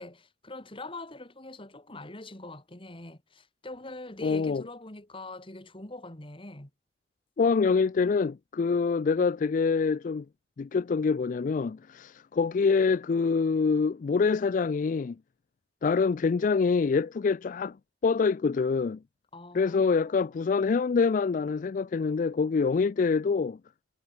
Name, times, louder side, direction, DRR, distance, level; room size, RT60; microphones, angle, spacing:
voice 1, 0.0-6.7 19.3-20.3, left 2 dB, 30° left, 2.7 m, -43 dB
voice 2, 4.2-4.6 7.4-10.3 10.6-15.2 15.8-17.8 18.0-19.0 19.5-23.6, left 5 dB, 50° left, 0.4 m, -25 dB
head